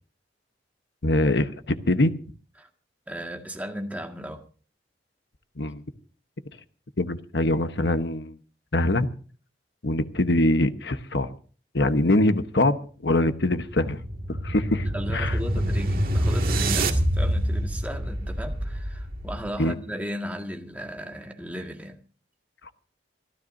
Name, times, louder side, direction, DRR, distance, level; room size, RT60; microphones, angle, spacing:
voice 1, 1.0-2.1 5.6-5.8 7.0-8.3 8.7-9.1 9.8-11.3 11.7-12.8 13.0-14.0 14.4-14.9 15.1-15.3 19.6-19.7, left 1 dB, 70° left, 1.1 m, -23 dB
voice 2, 3.1-4.4 14.9-22.0, equal, 10° right, 1.9 m, -36 dB
sound 1, 13.5-19.6, right 1 dB, 55° right, 2.1 m, -26 dB
27.0 x 13.0 x 2.7 m
head